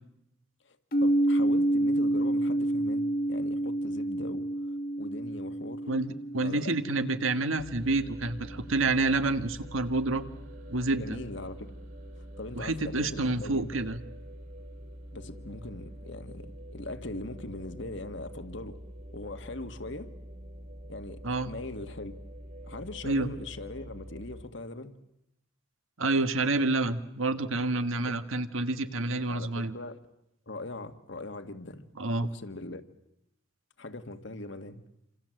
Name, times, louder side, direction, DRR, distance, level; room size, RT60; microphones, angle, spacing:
voice 1, 0.6-5.9 6.4-6.8 11.0-11.7 12.2-13.7 15.1-18.8 19.1-20.1 20.9-22.1 22.6-24.9 28.1-28.2 29.3-30.0 30.5-31.9 32.2-32.8 33.8-34.8, left 2 dB, 60° left, 8 dB, 1.7 m, -41 dB
sound 1, 0.9-8.7, right 1 dB, 45° left, 1.4 m, -29 dB
voice 2, 5.9-10.2 10.7-11.2 12.6-14.0 21.2-21.5 23.0-23.3 26.0-29.7 32.0-32.3, right 2 dB, 75° right, 10 dB, 1.6 m, -28 dB
sound 2, 7.6-24.4, equal, 45° right, 3.2 m, -45 dB
28.0 x 26.5 x 7.8 m, 0.85 s
head